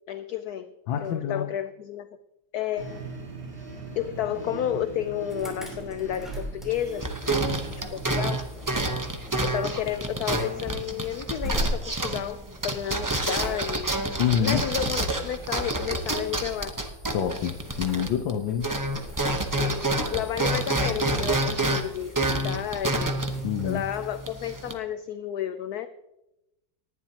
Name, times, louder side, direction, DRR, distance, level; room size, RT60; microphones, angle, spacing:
voice 1, 0.1-0.7 1.0-2.1 2.5-3.1 4.0-7.1 7.9-8.5 9.4-14.0 14.4-16.8 19.6-23.1 23.6-25.9, left 10 dB, 70° left, 11 dB, 0.9 m, -31 dB
voice 2, 0.9-1.5 14.2-14.6 17.1-18.7 23.4-23.8, left 9 dB, 90° left, 6 dB, 1.5 m, -26 dB
sound 1, 2.8-9.2, right 4 dB, 60° right, 4.7 m, -41 dB
Insect / Alarm, 5.3-24.7, equal, ahead, 3.5 m, -41 dB
sound 2, 6.7-18.3 18.6-24.7, right 2 dB, 30° right, 0.3 m, -28 dB
19.0 x 11.0 x 2.9 m, 0.90 s
omnidirectional pair, 2.0 m